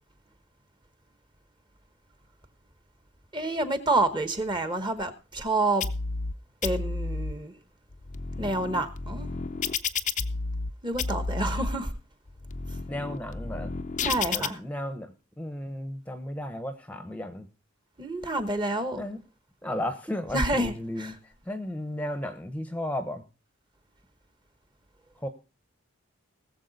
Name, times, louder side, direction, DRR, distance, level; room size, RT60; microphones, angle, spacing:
voice 1, 3.3-5.8 6.6-7.5 8.4-9.3 10.8-11.9 14.0-14.6 18.0-19.0 20.3-21.1, right 2 dB, 20° right, 1.0 m, -28 dB
sound 1, 5.8-6.3 6.6-7.3 7.9-10.7 11.0-11.7 12.3-14.5, left 4 dB, 35° left, 0.5 m, -31 dB
voice 2, 12.9-13.7 14.3-17.5 19.0-19.2 19.6-23.2 25.2-25.3, left 1 dB, 5° left, 0.8 m, -34 dB
19.5 x 7.2 x 4.0 m
head